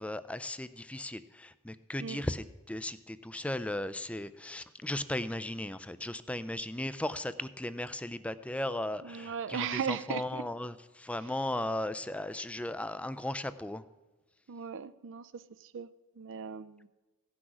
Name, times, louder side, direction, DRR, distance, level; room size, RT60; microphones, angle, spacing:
voice 1, 0.0-13.8, left 1 dB, 5° left, 0.3 m, -36 dB
voice 2, 9.0-10.4 14.5-15.4 15.7-15.9 16.2-16.9, right 7 dB, 60° right, 0.4 m, -37 dB
16.0 x 6.2 x 6.1 m
head